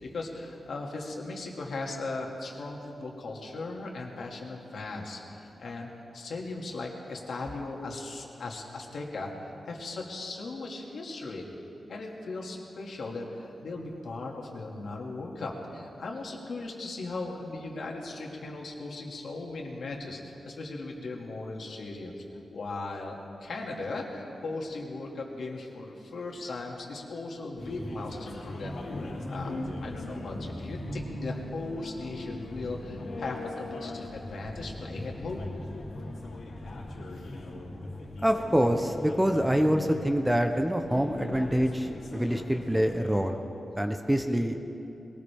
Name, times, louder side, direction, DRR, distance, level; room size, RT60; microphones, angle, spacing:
voice 1, 0.0-11.5 11.9-22.2 22.5-28.8 29.3-29.5 29.8-35.4, left 3 dB, 65° left, 0 dB, 2.2 m, -38 dB
sound 1, 27.6-43.3, left 1 dB, 85° left, 2.9 m, -39 dB
voice 2, 38.2-43.4 43.8-44.8, equal, 5° right, 5 dB, 0.7 m, -26 dB
21.5 x 19.0 x 3.5 m, 2.8 s
wide cardioid pair, 150°, 0 cm